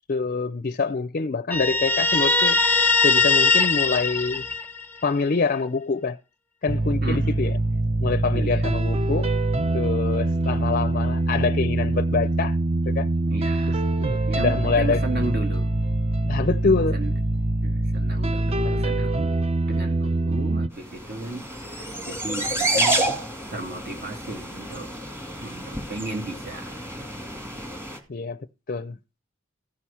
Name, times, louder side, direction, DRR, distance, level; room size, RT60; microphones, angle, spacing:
voice 1, 0.1-2.6 3.0-4.4 5.0-6.2 6.6-7.5 8.0-9.3 9.7-12.6 12.9-13.1 14.0-15.2 16.2-17.0 18.5-19.1 28.1-28.4 28.7-29.0, left 4 dB, 45° left, 0.5 m, -25 dB
Guitar, 1.5-5.1, left 3 dB, 10° left, 0.8 m, -20 dB
sound 1, 6.7-20.7, right 2 dB, 30° right, 0.6 m, -24 dB
voice 2, 7.0-7.4 8.3-8.8 13.3-13.8 14.3-15.7 16.9-17.1 17.6-19.3 19.7-23.2 23.5-24.9 25.4-27.0, right 2 dB, 50° right, 2.3 m, -35 dB
sound 2, 20.9-28.0, right 1 dB, 15° right, 2.2 m, -29 dB
15.0 x 6.2 x 5.6 m
head